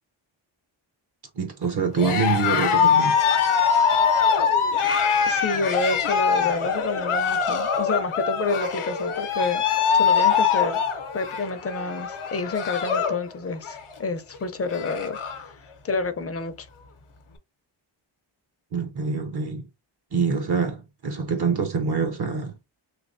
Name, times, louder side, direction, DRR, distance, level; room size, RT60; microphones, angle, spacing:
voice 1, 1.4-3.2 18.7-19.7 20.1-22.6, right 5 dB, 55° right, 0.7 m, -25 dB
Cheering, 1.9-13.2 13.5-13.9 14.3-14.4 14.6-15.5, left 6 dB, 80° left, 0.8 m, -23 dB
voice 2, 5.2-9.6 9.9-10.8 11.1-15.6 15.8-16.7, left 3 dB, 30° left, 0.5 m, -29 dB
3.2 x 3.0 x 2.6 m
wide cardioid pair, 90°, 49 cm